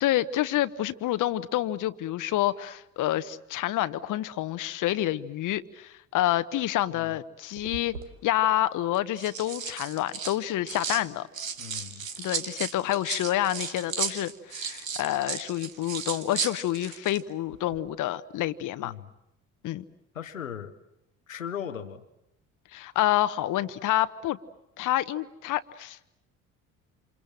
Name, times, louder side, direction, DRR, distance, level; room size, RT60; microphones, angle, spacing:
voice 1, 0.0-8.0 8.2-11.3 12.2-18.9 19.6-19.8 22.7-24.4 24.8-26.1, left 14 dB, 50° left, 12 dB, 1.0 m, -28 dB
sound 1, 7.6-8.1 8.9-11.0 11.3-17.2 17.5-17.8, right 6 dB, 90° right, 1.2 m, -35 dB
voice 2, 11.6-12.1 18.8-19.1 20.1-20.7 21.3-22.0, left 8 dB, 90° left, 8 dB, 1.1 m, -38 dB
28.0 x 27.0 x 7.6 m, 0.83 s
figure-of-eight pair, 55°, 39 cm